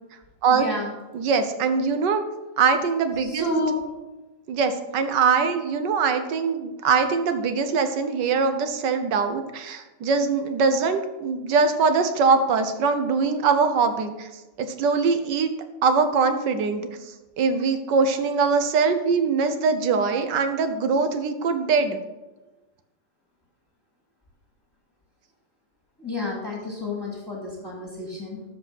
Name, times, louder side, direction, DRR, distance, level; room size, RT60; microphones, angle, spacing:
voice 1, 0.5-0.9 3.2-3.8 26.0-28.4, left 1 dB, 10° left, -3 dB, 2.3 m, -30 dB
voice 2, 1.1-2.2 2.6-3.4 4.5-14.3 14.6-15.5 15.8-16.8 17.4-22.0, right 5 dB, 70° right, 8 dB, 1.5 m, -22 dB
13.0 x 5.2 x 5.8 m, 1.1 s
omnidirectional pair, 2.0 m